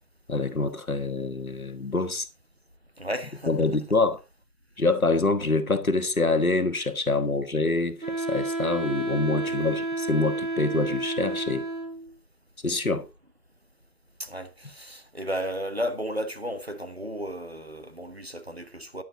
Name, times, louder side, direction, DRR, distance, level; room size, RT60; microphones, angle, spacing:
voice 1, 0.3-2.3 3.5-4.2 4.8-11.6 12.6-13.0, left 3 dB, 55° left, 1.5 m, -25 dB
voice 2, 3.0-3.7 9.5-9.7 14.2-19.0, equal, 40° right, 1.2 m, -34 dB
Wind instrument woodwind instrument, 8.0-12.1, right 2 dB, 55° right, 4.7 m, -30 dB
10.5 x 9.2 x 3.8 m
figure-of-eight pair, 175°, 49 cm